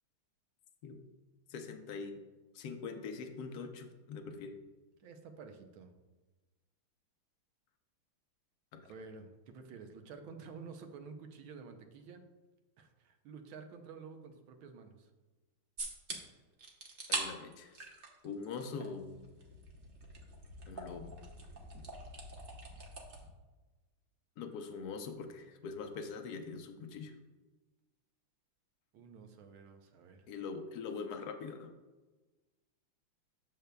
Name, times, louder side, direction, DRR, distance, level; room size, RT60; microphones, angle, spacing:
voice 1, 1.5-2.2 2.5-4.5 8.7-8.9 17.1-19.3 20.7-21.2 21.7-21.8 24.4-27.1 30.3-31.7, left 5 dB, 65° left, 6 dB, 1.0 m, -43 dB
voice 2, 5.0-5.9 8.9-12.2 12.8-15.1 16.1-16.2 28.9-30.3, right 5 dB, 75° right, 5 dB, 1.5 m, -51 dB
sound 1, 15.8-16.2 16.6-17.2 17.5-18.9 19.1-23.3, right 3 dB, 45° right, 0.8 m, -43 dB
9.2 x 6.7 x 2.2 m, 1.2 s
omnidirectional pair, 2.3 m